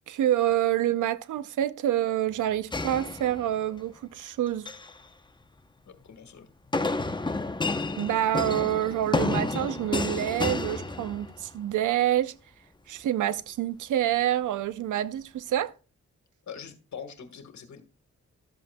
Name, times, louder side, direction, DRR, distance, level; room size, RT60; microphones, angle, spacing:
voice 1, 0.1-4.7 8.0-12.3 12.9-15.7, right 12 dB, 85° right, 0.6 m, -27 dB
sound 1, 2.7-3.8 4.5-5.0 6.7-11.6, left 3 dB, 15° left, 0.7 m, -30 dB
voice 2, 5.9-6.5 16.5-17.8, left 7 dB, 70° left, 1.5 m, -43 dB
12.5 x 7.6 x 2.2 m
cardioid pair, 85°, 30 cm